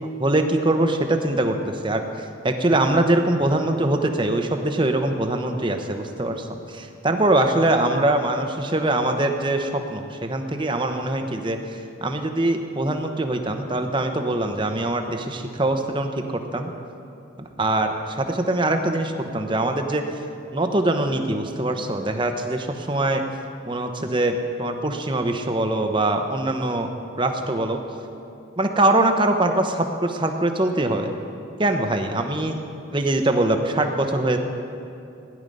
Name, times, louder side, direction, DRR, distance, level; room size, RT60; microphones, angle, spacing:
voice 1, 0.2-2.0 2.4-16.7 17.4-20.0 20.5-23.2 23.7-26.9 27.2-27.8 28.6-31.1 31.6-32.6 32.9-34.4, right 1 dB, 25° right, 5 dB, 0.9 m, -23 dB
16.5 x 10.5 x 5.4 m, 2.6 s
head